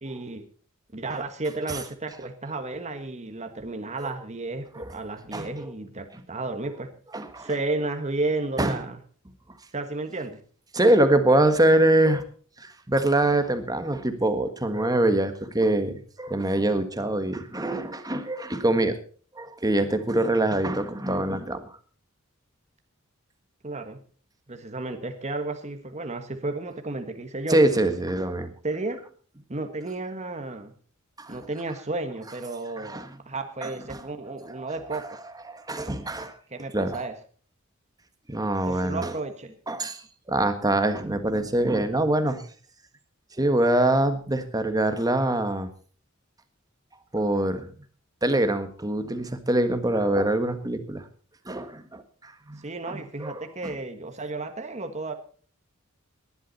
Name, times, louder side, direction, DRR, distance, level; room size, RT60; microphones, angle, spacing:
voice 1, 0.0-0.4 0.9-6.9 7.4-9.0 9.7-10.4 23.6-24.0 24.5-27.6 28.6-29.0 29.5-30.7 31.3-35.2 36.5-37.1 38.6-39.5 52.6-55.1, right 2 dB, 35° right, 6 dB, 1.5 m, -32 dB
voice 2, 7.1-7.5 8.6-8.8 10.7-12.2 12.6-19.0 19.3-21.6 27.5-28.5 31.2-31.4 32.8-33.1 33.6-34.0 34.6-35.0 35.5-36.3 36.7-37.0 38.3-39.2 39.7-40.0 40.3-42.4 43.4-45.7 47.1-47.7 48.2-51.0 51.4-53.7, right 1 dB, 20° right, 9 dB, 1.6 m, -24 dB
19.0 x 11.5 x 4.2 m, 0.43 s
head